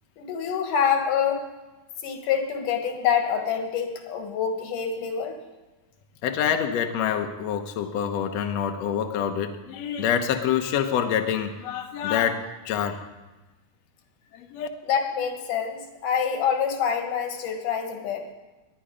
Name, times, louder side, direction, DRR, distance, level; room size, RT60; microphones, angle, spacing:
voice 1, 0.2-1.4 2.0-5.4 14.9-18.3, left 7 dB, 85° left, 5 dB, 2.9 m, -26 dB
voice 2, 6.2-13.0 14.3-14.7, left 8 dB, 65° left, 5 dB, 1.9 m, -26 dB
20.0 x 10.0 x 5.0 m, 1.1 s
omnidirectional pair, 3.6 m